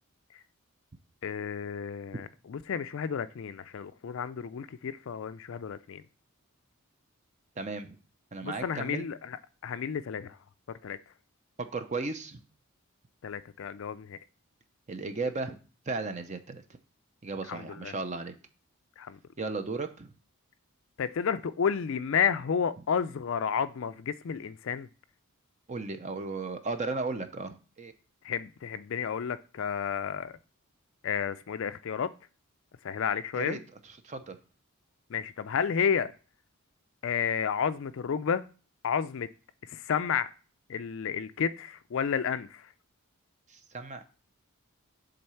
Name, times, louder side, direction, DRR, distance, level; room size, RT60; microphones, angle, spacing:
voice 1, 1.2-6.0 8.4-10.4 10.7-11.0 13.2-14.2 17.5-17.9 19.0-19.2 21.0-24.9 28.2-30.4 31.0-32.1 32.8-33.6 35.1-36.1 37.0-38.4 38.8-39.3 39.6-40.3 40.7-42.7, left 7 dB, 60° left, 0.4 m, -31 dB
voice 2, 7.6-8.0 8.3-9.0 11.7-12.4 14.9-15.6 15.9-16.6 17.2-18.3 19.4-20.1 25.7-27.9 33.3-33.6 34.0-34.4 43.5-44.0, right 3 dB, 30° right, 0.6 m, -35 dB
7.7 x 3.9 x 5.6 m
head